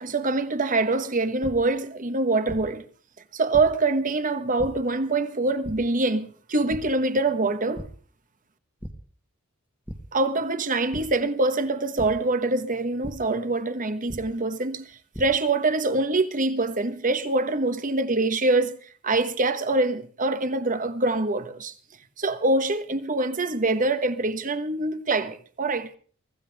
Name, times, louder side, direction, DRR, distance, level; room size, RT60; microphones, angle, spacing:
voice 1, 0.0-2.8 3.3-7.9 10.1-14.9 15.2-18.8 19.0-21.7 22.2-26.0, right 2 dB, 40° right, 1.3 m, -24 dB
sound 1, 1.4-1.5 2.5-2.6 3.5-3.6 4.6-4.7 5.6-5.7 6.7-6.8 7.2-7.4 7.7-7.9 8.8-8.9 9.9-10.0 10.9-11.0 12.0-12.1 13.0-13.1 14.1-14.2 14.9-15.2, equal, 10° right, 1.5 m, -35 dB
24.0 x 15.0 x 3.5 m
head